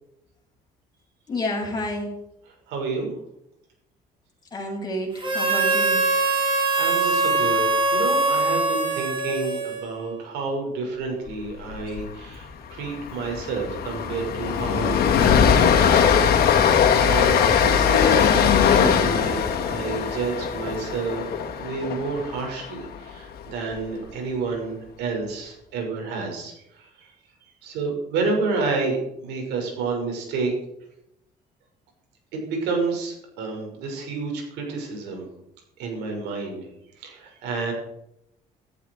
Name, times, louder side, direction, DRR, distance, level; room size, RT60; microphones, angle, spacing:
voice 1, 1.3-2.2 4.5-6.0, left 1 dB, 25° left, -1 dB, 7.1 m, -29 dB
voice 2, 2.7-3.1 6.8-7.6 7.9-21.3 21.6-27.1 27.4-30.5 32.3-35.3 35.8-36.7 37.0-37.7, right 4 dB, 90° right, 2 dB, 6.1 m, -30 dB
Harmonica, 5.2-10.1, right 3 dB, 30° right, 4.5 m, -22 dB
Train, 11.7-12.0 12.3-12.4 12.8-23.0, left 7 dB, 70° left, 2.7 m, -20 dB
16.5 x 14.0 x 4.8 m, 0.82 s
cardioid pair, 110°, 17 cm